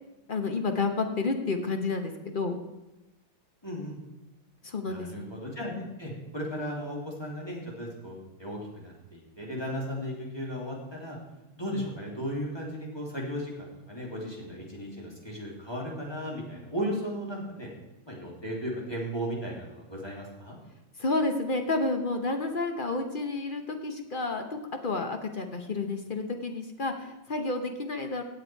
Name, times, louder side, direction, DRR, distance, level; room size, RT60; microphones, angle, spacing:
voice 1, 0.3-2.6 4.6-5.3 21.0-28.2, left 3 dB, 45° left, 5 dB, 0.6 m, -30 dB
voice 2, 3.6-4.0 4.9-11.2 11.6-17.7 18.0-20.6, equal, 10° left, -3 dB, 3.0 m, -36 dB
16.5 x 8.1 x 4.6 m, 1.0 s
omnidirectional pair, 2.3 m